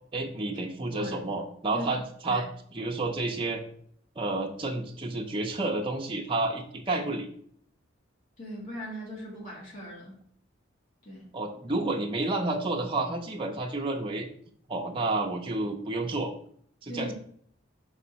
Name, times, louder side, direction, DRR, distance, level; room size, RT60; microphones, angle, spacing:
voice 1, 0.1-3.6 4.2-7.3 11.3-14.3 14.7-16.3 16.8-17.1, right 2 dB, 25° right, 0 dB, 0.6 m, -30 dB
voice 2, 8.4-10.2 11.1-11.3 16.9-17.1, equal, 45° left, -5 dB, 2.1 m, -39 dB
5.1 x 3.7 x 5.6 m, 0.62 s
head